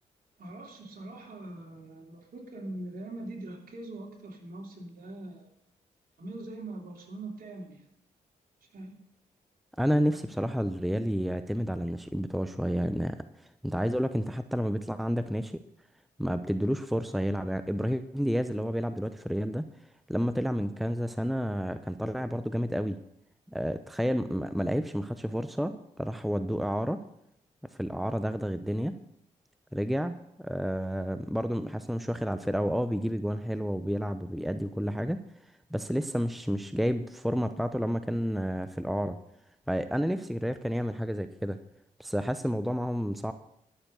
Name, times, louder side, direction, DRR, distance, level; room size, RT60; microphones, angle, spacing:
voice 1, 0.4-5.5 6.2-7.8 8.7-9.0, right 2 dB, 60° right, 0 dB, 3.3 m, -42 dB
voice 2, 9.8-13.2 13.6-15.6 16.2-19.7 20.1-23.0 23.5-27.0 27.8-29.0 29.7-35.2 35.7-39.2 39.7-41.6 42.0-43.3, equal, ahead, 10 dB, 0.8 m, -30 dB
12.0 x 7.1 x 6.8 m, 0.77 s
supercardioid pair, 45°, 17 cm